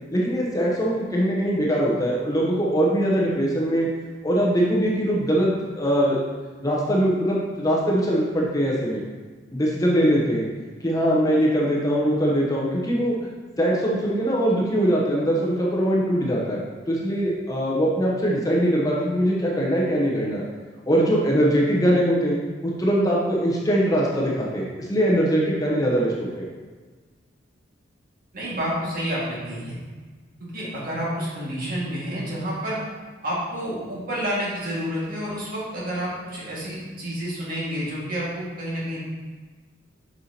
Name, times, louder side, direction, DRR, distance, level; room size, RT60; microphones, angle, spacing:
voice 1, 0.1-3.9 4.2-6.2 6.6-9.0 9.5-10.5 10.8-13.2 13.6-20.4 20.9-22.4 22.6-26.5, equal, 20° left, -4 dB, 0.8 m, -22 dB
voice 2, 28.3-29.8 30.4-32.8 33.2-39.0, equal, 45° right, -6 dB, 1.8 m, -29 dB
6.7 x 5.5 x 2.8 m, 1.4 s
head